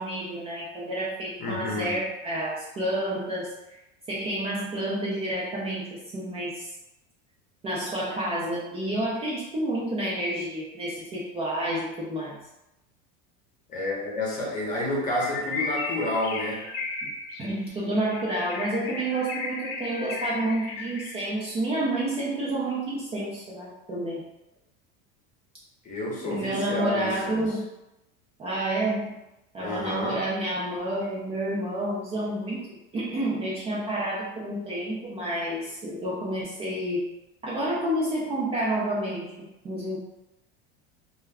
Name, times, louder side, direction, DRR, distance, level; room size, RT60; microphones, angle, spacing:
voice 1, 0.0-3.5 4.1-6.7 7.6-12.4 17.0-17.1 17.4-24.2 26.3-27.7 28.4-29.2 29.5-37.1 37.4-40.0, right 1 dB, 20° right, -6 dB, 0.4 m, -29 dB
voice 2, 1.4-1.9 13.7-16.6 25.8-27.5 29.6-30.2, left 1 dB, 25° left, -3 dB, 0.8 m, -30 dB
Bird, 15.1-21.4, left 3 dB, 75° left, 0.6 m, -35 dB
2.4 x 2.2 x 3.3 m, 0.93 s
supercardioid pair, 150°, 29 cm